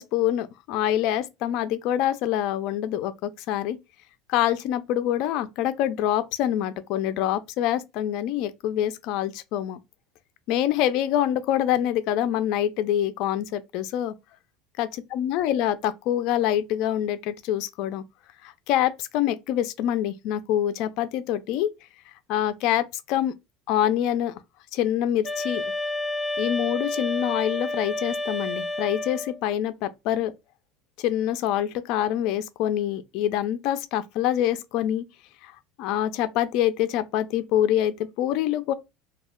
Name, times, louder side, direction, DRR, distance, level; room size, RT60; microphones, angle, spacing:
voice 1, 0.0-3.8 4.3-9.8 10.5-14.1 14.8-18.0 18.4-21.7 22.3-23.3 23.7-24.4 24.7-25.6 26.4-30.3 31.0-35.0 35.4-35.5 35.8-38.7, left 11 dB, 60° left, 0.4 m, -25 dB
sound 1, 25.2-29.4, left 2 dB, 10° left, 0.6 m, -30 dB
2.3 x 2.1 x 3.6 m
supercardioid pair, 135°, 0 cm